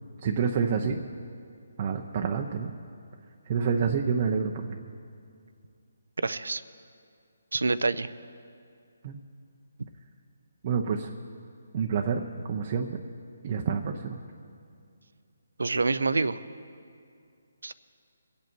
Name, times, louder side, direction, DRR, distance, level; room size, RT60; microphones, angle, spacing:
voice 1, 0.2-1.0 1.8-2.7 3.5-4.8 9.0-9.2 10.6-11.1 11.7-12.9 13.4-14.1, right 6 dB, 30° right, 2 dB, 0.7 m, -28 dB
voice 2, 6.2-6.6 7.5-8.1 15.6-16.4 17.6-17.7, right 3 dB, 85° right, 15 dB, 0.6 m, -26 dB
23.5 x 8.2 x 4.5 m, 2.3 s
hypercardioid pair, 165°, 0 cm